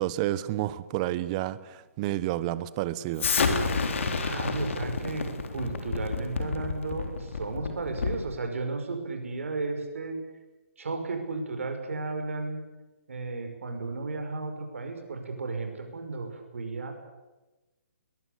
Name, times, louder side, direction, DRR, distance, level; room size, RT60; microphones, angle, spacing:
voice 1, 0.0-3.3, right 14 dB, 30° right, 17 dB, 1.1 m, -30 dB
Explosion, 3.2-8.3, left 4 dB, 60° left, 3.5 m, -29 dB
voice 2, 4.2-10.2 10.8-12.6 13.1-16.9, right 3 dB, 65° right, 5 dB, 5.8 m, -34 dB
21.5 x 21.5 x 8.2 m, 1.1 s
figure-of-eight pair, 135°, 8 cm